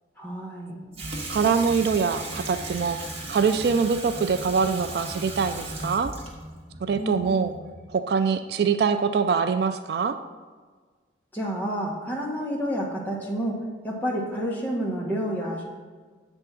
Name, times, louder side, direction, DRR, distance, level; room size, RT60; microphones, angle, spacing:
voice 1, 0.2-0.8 7.0-7.6 11.3-15.6, equal, 10° left, -4 dB, 1.2 m, -30 dB
Water tap faucet / Sink (filling or washing), 0.9-8.0, right 2 dB, 30° right, 1.0 m, -37 dB
voice 2, 1.3-3.0 3.3-6.1 6.8-7.5 7.9-10.2, right 5 dB, 60° right, 9 dB, 0.3 m, -24 dB
7.7 x 3.5 x 5.9 m, 1.5 s
head